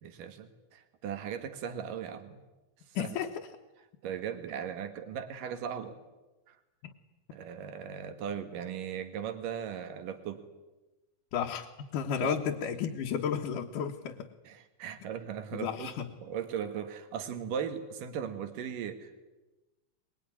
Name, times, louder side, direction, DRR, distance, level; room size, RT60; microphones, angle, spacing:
voice 1, 0.0-2.4 2.9-3.1 4.0-6.0 6.5-6.6 7.3-10.4 12.2-12.4 14.4-15.9 16.2-19.2, right 8 dB, 85° right, 8 dB, 3.3 m, -38 dB
voice 2, 2.9-3.3 11.3-11.7 11.9-14.3 15.5-16.1, left 8 dB, 80° left, 0 dB, 2.8 m, -32 dB
24.0 x 21.5 x 10.0 m, 1.1 s
omnidirectional pair, 3.7 m